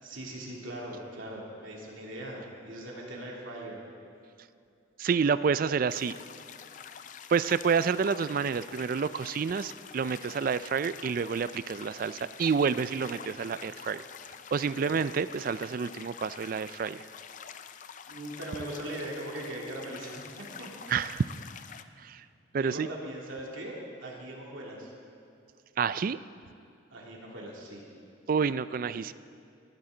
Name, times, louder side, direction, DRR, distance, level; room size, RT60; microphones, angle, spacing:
voice 1, 0.0-3.8 14.6-14.9 18.1-20.7 21.7-21.9 22.6-24.9 26.9-27.8, right 1 dB, 80° right, -3 dB, 2.9 m, -40 dB
voice 2, 5.0-6.2 7.3-14.0 14.5-17.0 20.9-21.3 22.0-22.2 22.5-22.9 25.8-26.2 28.3-29.1, right 6 dB, 45° right, 15 dB, 0.3 m, -28 dB
sound 1, 5.9-21.8, left 7 dB, 40° left, 0.4 m, -47 dB
19.0 x 13.0 x 3.9 m, 2.6 s
head